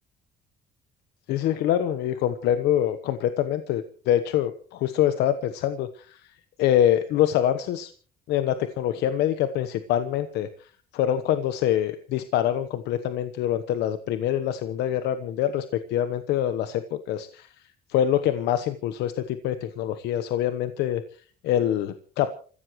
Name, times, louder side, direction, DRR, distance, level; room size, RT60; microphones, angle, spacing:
voice 1, 1.3-6.3 6.6-7.9 8.3-22.3, left 11 dB, 85° left, 10 dB, 1.1 m, -25 dB
28.5 x 15.5 x 3.2 m, 0.43 s
cardioid pair, 110°, 17 cm